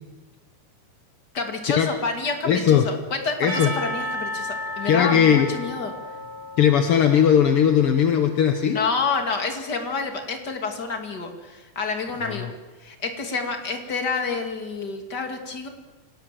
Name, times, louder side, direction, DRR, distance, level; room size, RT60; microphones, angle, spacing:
voice 1, 1.3-5.9 8.7-12.5 12.8-15.7, left 4 dB, 30° left, 5 dB, 2.7 m, -28 dB
voice 2, 2.4-2.9 3.4-3.7 4.9-5.6 6.6-8.8 12.2-12.5, left 8 dB, 60° left, 6 dB, 1.5 m, -18 dB
Percussion / Church bell, 3.5-8.5, left 1 dB, 75° right, 9.1 m, -34 dB
28.5 x 18.0 x 7.7 m, 1.2 s
omnidirectional pair, 4.0 m